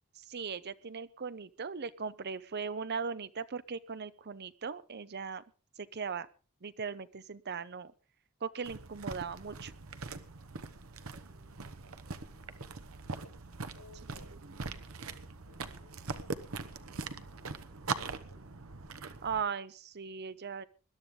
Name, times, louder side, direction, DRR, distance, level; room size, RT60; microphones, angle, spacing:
voice 1, 0.2-5.4 5.8-6.3 6.6-7.9 8.4-9.7 14.4-14.5 19.2-20.6, right 5 dB, 50° right, 15 dB, 0.7 m, -38 dB
sound 1, 8.6-19.4, right 4 dB, 70° right, 1.1 m, -42 dB
voice 2, 11.1-12.8 13.1-18.5, left 2 dB, 85° left, 3 dB, 6.6 m, -63 dB
20.5 x 12.0 x 3.8 m, 0.35 s
head